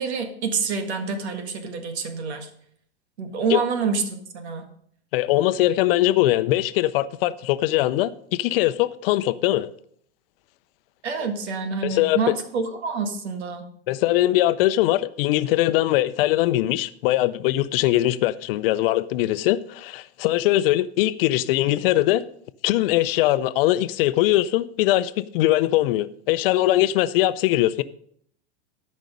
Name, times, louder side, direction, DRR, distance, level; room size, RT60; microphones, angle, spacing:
voice 1, 0.0-2.5 3.2-4.7 11.0-13.7, right 5 dB, 80° right, 1.8 m, -27 dB
voice 2, 5.1-9.7 11.8-12.2 13.9-22.2 22.6-27.8, left 15 dB, 60° left, 0.6 m, -21 dB
12.5 x 5.3 x 5.3 m
hypercardioid pair, 115°, 32 cm